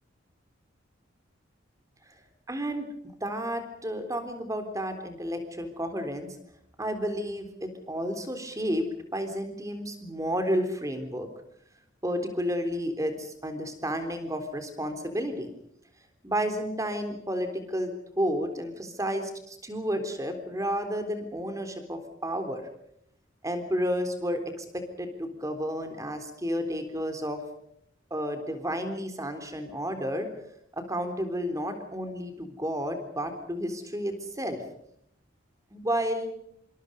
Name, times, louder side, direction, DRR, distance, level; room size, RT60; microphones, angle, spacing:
voice 1, 2.5-2.9 3.2-6.4 6.8-11.3 12.0-15.5 16.2-22.6 23.4-27.4 28.1-30.3 30.7-34.6 35.7-36.3, equal, 15° right, 7 dB, 3.7 m, -31 dB
27.0 x 26.0 x 5.4 m, 0.72 s
head